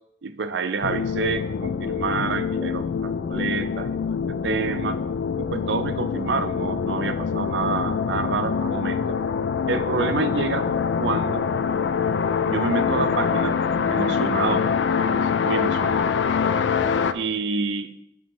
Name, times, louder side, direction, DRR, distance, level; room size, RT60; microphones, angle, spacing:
voice 1, 0.2-4.0 4.3-5.0 5.4-9.2 9.7-10.7 11.0-11.5 12.4-13.6 13.9-16.1 17.1-17.9, right 4 dB, 70° right, 10 dB, 0.5 m, -28 dB
sound 1, 0.8-17.1, left 6 dB, 75° left, 0.3 m, -25 dB
8.2 x 2.9 x 5.4 m, 0.77 s
head